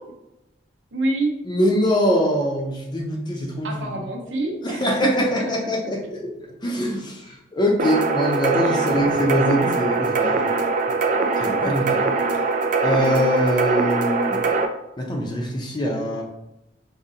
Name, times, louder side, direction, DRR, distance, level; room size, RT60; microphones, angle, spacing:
voice 1, 0.9-1.3 3.6-5.5, right 2 dB, 75° right, 2 dB, 0.8 m, -26 dB
voice 2, 1.4-4.0 4.6-6.3 6.6-10.4 11.4-12.0 12.8-14.4 15.0-16.2, equal, 25° left, 0 dB, 0.6 m, -23 dB
sound 1, 7.8-14.7, right 4 dB, 45° right, 0.3 m, -22 dB
5.0 x 2.7 x 2.8 m, 0.92 s
head